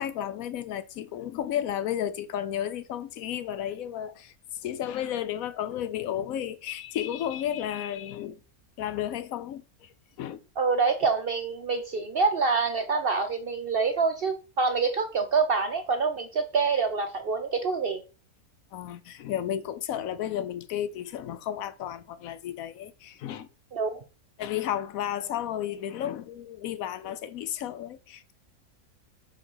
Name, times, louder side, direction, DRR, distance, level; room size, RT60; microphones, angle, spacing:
voice 1, 0.0-4.3 4.6-8.4 8.8-10.4 18.7-23.5 24.4-28.3, left 10 dB, 75° left, 1.0 m, -33 dB
voice 2, 10.6-18.0 23.7-24.0, right 4 dB, 60° right, 0.6 m, -26 dB
5.2 x 4.5 x 5.4 m
omnidirectional pair, 1.5 m